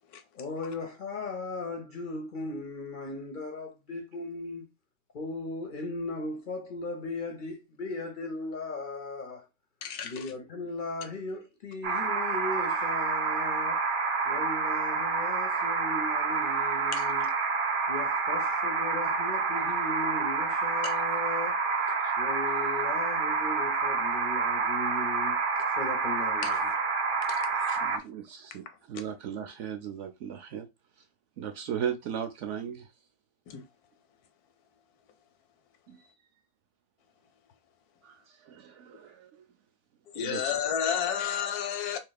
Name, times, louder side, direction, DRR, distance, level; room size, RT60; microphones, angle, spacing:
voice 1, 0.3-4.7 5.1-9.5 10.0-13.9 14.2-17.3 17.9-21.6 22.2-25.4 25.8-26.7, left 3 dB, 55° left, 0.5 m, -37 dB
voice 2, 9.8-10.2 16.9-17.0 20.8-20.9 27.3-27.8 33.5-33.6 40.1-42.0, left 8 dB, 90° left, 1.2 m, -31 dB
sound 1, 11.8-28.0, right 4 dB, 85° right, 0.4 m, -28 dB
voice 3, 27.8-30.7 31.4-32.9 35.9-36.0 38.0-39.4 40.2-40.5, right 8 dB, 65° right, 0.8 m, -37 dB
2.9 x 2.8 x 3.9 m
omnidirectional pair, 1.6 m